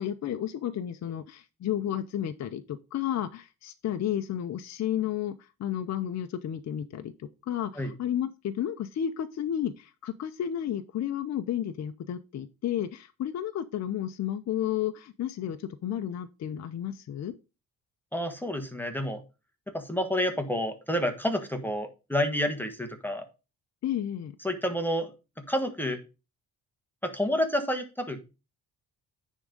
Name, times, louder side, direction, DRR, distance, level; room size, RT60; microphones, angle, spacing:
voice 1, 0.0-17.4 23.8-24.3, left 10 dB, 50° left, 8 dB, 0.6 m, -32 dB
voice 2, 18.1-19.2 19.7-23.2 24.4-25.1 25.5-26.0 27.0-28.2, equal, 5° left, 6 dB, 1.3 m, -29 dB
9.7 x 3.7 x 5.2 m, 0.29 s
cardioid pair, 105°, 34 cm